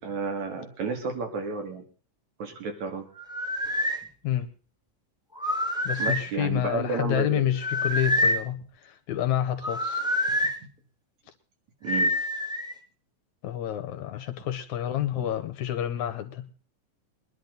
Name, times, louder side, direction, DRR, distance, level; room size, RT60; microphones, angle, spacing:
voice 1, 0.0-1.9 2.4-3.0 6.0-7.5 11.8-12.1, right 5 dB, 70° right, 4 dB, 3.7 m, -31 dB
sound 1, 3.2-4.0 5.3-6.3 7.6-8.4 9.6-10.5 11.9-12.7, left 1 dB, 5° right, 0.5 m, -26 dB
voice 2, 5.8-10.0 13.4-16.5, left 11 dB, 75° left, 8 dB, 2.4 m, -29 dB
22.0 x 11.0 x 3.9 m, 0.38 s
omnidirectional pair, 3.5 m